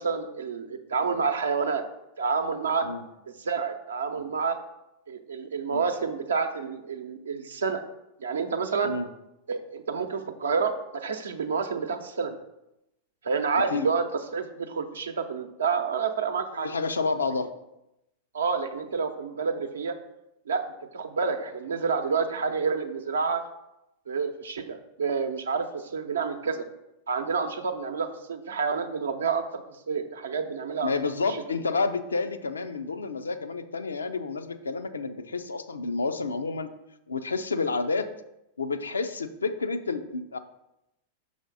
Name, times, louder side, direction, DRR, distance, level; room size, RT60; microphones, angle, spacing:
voice 1, 0.0-1.8 2.2-2.9 3.3-4.6 5.1-7.8 8.2-8.9 9.5-12.3 13.2-14.1 14.3-16.7 18.3-20.0 20.5-20.6 20.9-23.4 24.1-26.7 27.1-29.6 29.9-31.4, right 5 dB, 75° right, 7 dB, 0.7 m, -29 dB
voice 2, 13.5-13.9 16.6-17.5 30.8-36.7 37.1-38.1 38.6-40.4, left 4 dB, 80° left, 10 dB, 0.5 m, -29 dB
6.3 x 4.9 x 4.0 m, 0.88 s
figure-of-eight pair, 95°, 0 cm